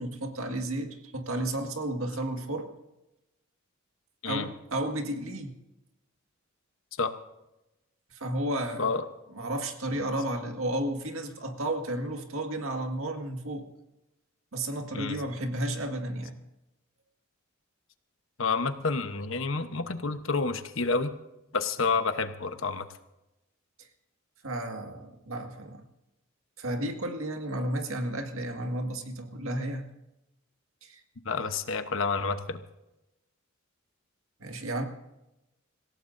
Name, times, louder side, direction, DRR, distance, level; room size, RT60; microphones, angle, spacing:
voice 1, 0.0-2.7 4.2-5.5 8.1-8.9 9.3-13.7 14.5-16.4 23.8-23.9 24.4-25.8 26.6-29.9 30.8-31.0 34.4-34.8, right 1 dB, 75° right, 4 dB, 1.9 m, -32 dB
voice 2, 18.4-21.1 21.5-22.9 31.2-32.6, left 4 dB, 65° left, 9 dB, 1.0 m, -29 dB
26.5 x 16.0 x 2.7 m, 0.94 s
head